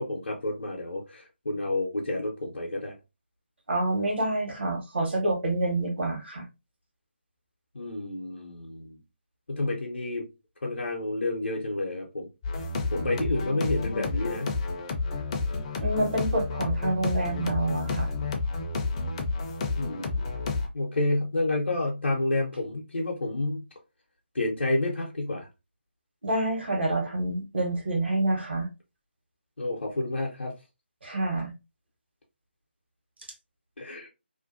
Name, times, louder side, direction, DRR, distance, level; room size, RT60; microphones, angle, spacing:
voice 1, 0.0-2.9 7.7-9.0 9.5-10.3 10.6-12.3 12.9-14.6 19.8-20.2 20.7-23.6 24.3-25.5 29.6-30.5 33.8-34.1, left 2 dB, 70° left, 0.6 m, -29 dB
voice 2, 3.7-6.4 15.8-18.1 26.2-28.7 31.0-31.5, right 2 dB, 70° right, 1.1 m, -27 dB
sound 1, 12.4-20.7, left 3 dB, 30° left, 0.4 m, -30 dB
2.5 x 2.2 x 2.4 m
figure-of-eight pair, 150°, 6 cm